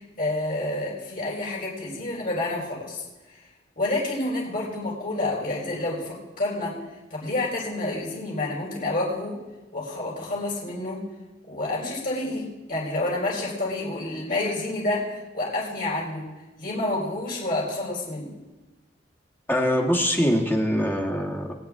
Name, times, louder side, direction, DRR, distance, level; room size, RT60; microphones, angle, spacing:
voice 1, 0.0-3.0 3.8-6.8 7.1-9.4 9.7-11.0 11.4-16.2 16.6-18.3, left 2 dB, 50° left, -3 dB, 4.3 m, -29 dB
voice 2, 19.5-21.5, equal, 10° left, 0 dB, 1.5 m, -23 dB
22.0 x 8.9 x 3.6 m, 1.1 s
head